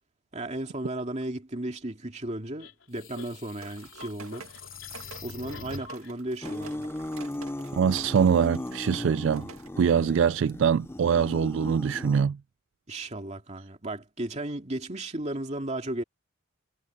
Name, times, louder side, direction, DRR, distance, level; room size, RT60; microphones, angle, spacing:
voice 1, 0.3-4.4 5.2-6.9 12.9-16.0, right 1 dB, 30° right, 2.4 m, -35 dB
sound 1, 2.6-6.1, left 4 dB, 60° left, 3.6 m, -44 dB
sound 2, 3.6-9.7, right 5 dB, 75° right, 2.2 m, -48 dB
sound 3, 6.4-12.2, left 1 dB, 10° left, 0.4 m, -37 dB
voice 2, 7.8-9.5 9.8-12.4, right 7 dB, 60° right, 0.3 m, -23 dB
head